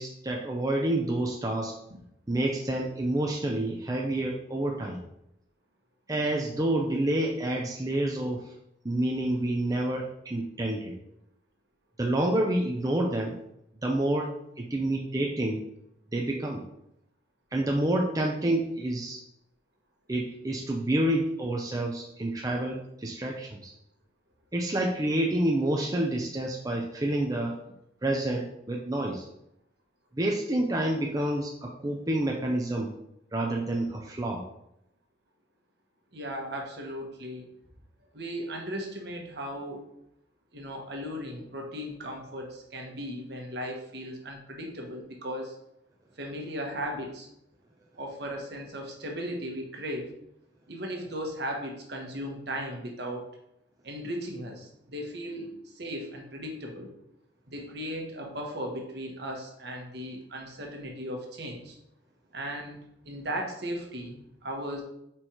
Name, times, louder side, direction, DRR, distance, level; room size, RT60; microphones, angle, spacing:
voice 1, 0.0-1.7 2.3-5.0 6.1-8.4 8.8-10.9 12.0-13.4 13.8-14.3 14.6-15.6 16.1-16.6 17.5-19.2 20.1-23.7 24.5-27.6 28.0-29.3 30.2-32.9 33.3-34.4, right 1 dB, 20° right, 0 dB, 0.5 m, -28 dB
voice 2, 36.1-37.4 38.1-39.8 40.5-45.6 46.2-47.3 47.9-50.1 50.7-53.3 53.8-56.9 57.5-61.8 62.3-64.8, equal, 60° right, 1 dB, 1.2 m, -37 dB
5.0 x 4.4 x 4.4 m, 0.79 s
head